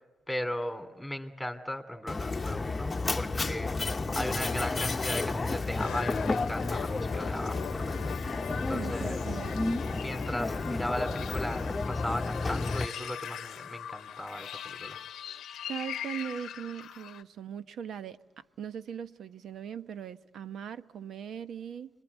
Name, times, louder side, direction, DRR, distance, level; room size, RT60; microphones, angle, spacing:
voice 1, 0.3-3.7 4.1-9.2 9.9-15.0, left 1 dB, 5° left, 2.9 m, -37 dB
Mechanisms, 2.1-12.9, left 3 dB, 25° left, 1.0 m, -31 dB
sound 1, 5.8-17.2, left 9 dB, 70° left, 0.8 m, -41 dB
voice 2, 8.7-9.8 15.7-18.2 18.6-21.9, right 8 dB, 65° right, 1.1 m, -40 dB
27.0 x 22.5 x 8.2 m
cardioid pair, 90°, 0 cm